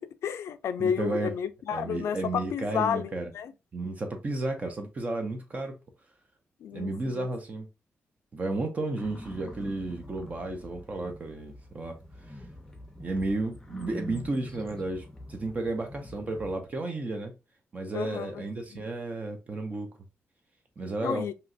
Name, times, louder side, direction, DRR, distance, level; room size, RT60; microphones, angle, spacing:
voice 1, 0.0-3.5 6.6-7.3 17.9-18.4 18.7-18.9 21.0-21.3, left 8 dB, 85° left, 0.3 m, -31 dB
voice 2, 0.8-1.3 1.7-3.3 3.7-5.7 6.7-7.7 8.3-12.0 12.3-12.4 13.0-17.3 17.7-19.9 20.8-21.3, right 2 dB, 35° right, 0.5 m, -33 dB
sound 1, 9.0-16.6, equal, 10° left, 0.6 m, -45 dB
3.0 x 2.7 x 2.5 m
wide cardioid pair, 140°, 4 cm